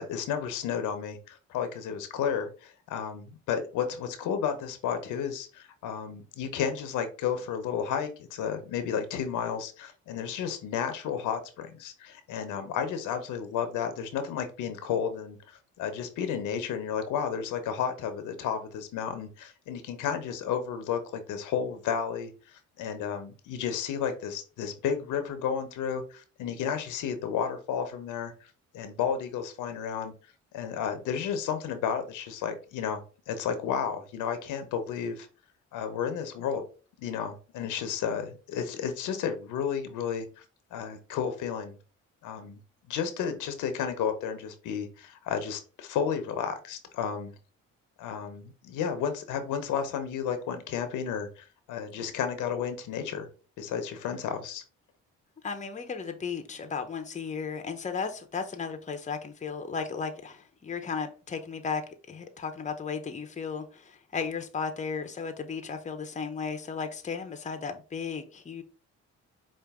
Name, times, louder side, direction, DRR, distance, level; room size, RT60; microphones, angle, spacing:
voice 1, 0.0-28.3 28.7-30.1 30.5-35.3 35.7-36.6 37.0-40.4 40.7-41.8 42.2-42.6 42.9-47.3 48.0-53.3 53.6-54.6, left 7 dB, 90° left, 0.8 m, -32 dB
voice 2, 55.4-68.6, left 5 dB, 25° left, 0.7 m, -35 dB
5.0 x 2.5 x 3.5 m
cardioid pair, 90°, 30 cm